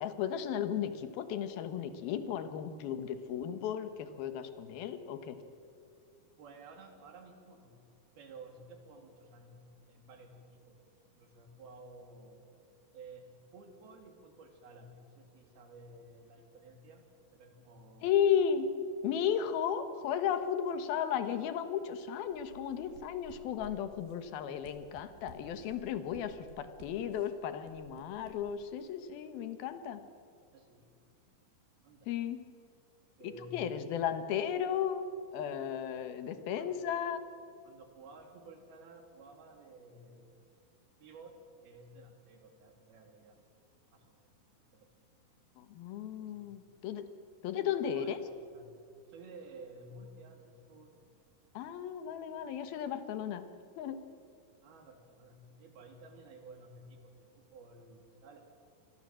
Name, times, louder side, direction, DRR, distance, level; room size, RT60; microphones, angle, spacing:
voice 1, 0.0-5.4 18.0-18.7 19.0-30.0 32.1-32.5 33.2-35.0 35.3-37.2 45.6-47.1 47.4-48.2 51.5-53.4 53.8-54.0, left 8 dB, 75° left, 10 dB, 3.1 m, -34 dB
voice 2, 6.4-7.8 8.2-9.6 9.9-10.8 11.2-12.4 12.9-17.0 17.3-18.1 30.5-30.9 31.8-32.1 33.2-33.8 36.5-36.7 37.6-40.3 41.0-41.3 41.6-43.4 43.9-44.3 44.7-44.9 46.2-46.5 47.9-48.8 49.1-51.0 54.6-58.4, right 2 dB, 70° right, 4 dB, 4.7 m, -53 dB
sound 1, 22.3-28.9, right 4 dB, 90° right, 5.0 m, -56 dB
27.5 x 21.5 x 7.7 m, 2.4 s
omnidirectional pair, 4.5 m